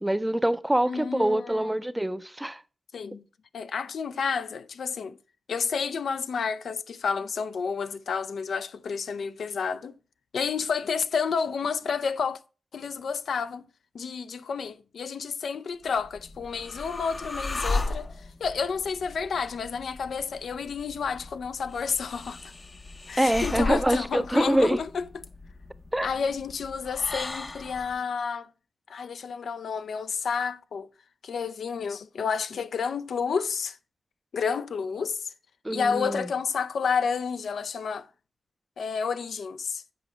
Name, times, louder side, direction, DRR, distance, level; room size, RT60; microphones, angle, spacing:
voice 1, 0.0-2.6 23.2-24.8 25.9-26.1 35.6-36.3, right 1 dB, 10° right, 0.5 m, -25 dB
voice 2, 0.9-1.8 2.9-3.2 3.5-5.2 5.5-10.0 10.3-12.4 12.7-13.6 13.9-18.1 18.4-22.4 23.1-25.1 26.0-28.5 28.9-30.9 31.2-33.8 34.3-35.3 35.7-38.1 38.8-39.8, left 6 dB, 80° left, 0.4 m, -30 dB
sound 1, 15.9-28.0, left 2 dB, 35° left, 0.6 m, -36 dB
7.7 x 5.0 x 4.9 m
cardioid pair, 75°, 0 cm